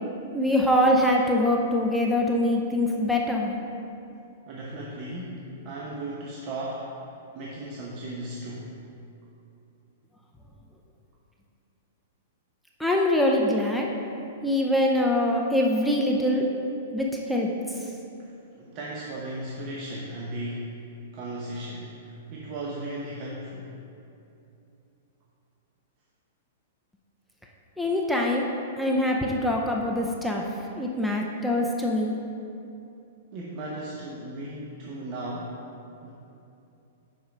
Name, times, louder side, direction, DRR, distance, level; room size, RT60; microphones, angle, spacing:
voice 1, 0.3-3.6 12.8-13.9 14.4-16.5 16.9-18.0 27.8-28.5 28.8-32.2, left 1 dB, ahead, -1 dB, 0.5 m, -24 dB
voice 2, 4.5-6.9 7.3-8.7 18.2-18.3 18.5-20.9 21.1-23.7 33.3-35.6 36.0-36.1, right 1 dB, 35° right, -4 dB, 0.8 m, -36 dB
5.7 x 5.5 x 5.1 m, 2.7 s
hypercardioid pair, 145°, 0 cm